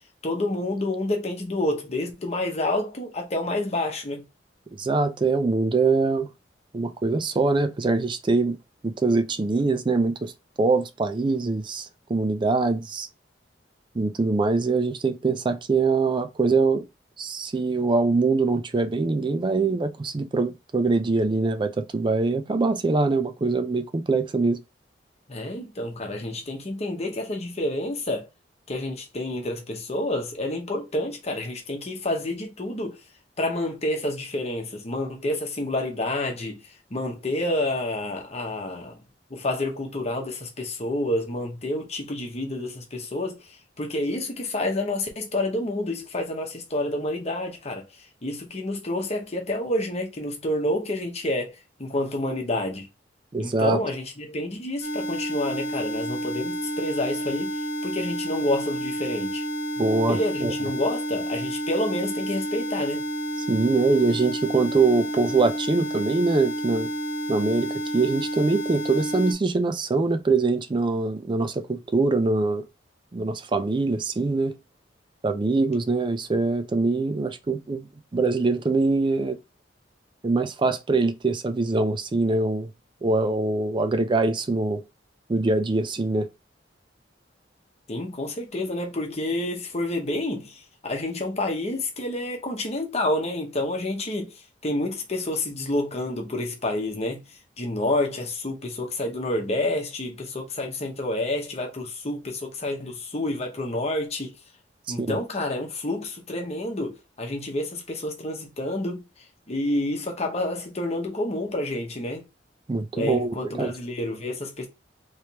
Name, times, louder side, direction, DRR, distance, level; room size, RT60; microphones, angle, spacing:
voice 1, 0.2-4.2 25.3-28.3 28.7-33.0 33.4-39.0 39.3-52.9 53.4-59.4 60.1-63.0 87.9-104.3 104.9-109.0 109.5-112.2 112.9-114.7, left 1 dB, 40° left, 1.0 m, -29 dB
voice 2, 4.8-6.3 6.7-8.6 8.8-10.3 10.6-13.1 14.0-16.9 17.2-24.6 53.3-53.8 59.8-60.5 63.5-66.9 67.3-72.6 73.1-74.6 75.2-77.9 78.1-79.4 80.2-82.7 83.0-84.8 85.3-86.3 105.0-105.2 112.7-113.7, right 3 dB, 25° right, 0.4 m, -23 dB
sound 1, 54.8-69.3, equal, 90° left, 1.0 m, -30 dB
3.3 x 3.2 x 2.8 m
head